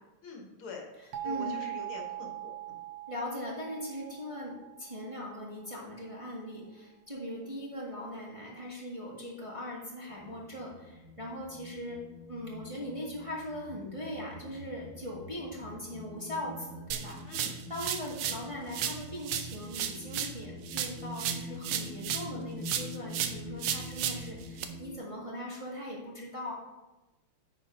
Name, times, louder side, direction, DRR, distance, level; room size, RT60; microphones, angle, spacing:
voice 1, 0.2-0.9 1.2-2.8 17.3-17.6, left 4 dB, 70° left, 1 dB, 2.0 m, -45 dB
voice 2, 1.0-1.6 3.1-12.0 12.3-26.5, left 1 dB, 15° right, -5 dB, 1.5 m, -40 dB
sound 1, 1.1-5.8, right 13 dB, 65° right, 1.5 m, -41 dB
sound 2, 10.1-24.9, left 1 dB, 55° left, 3.4 m, -46 dB
sound 3, 16.9-18.5 18.7-22.4 22.6-24.6, right 9 dB, 90° right, 1.6 m, -34 dB
10.0 x 4.4 x 5.0 m, 1.1 s
omnidirectional pair, 2.4 m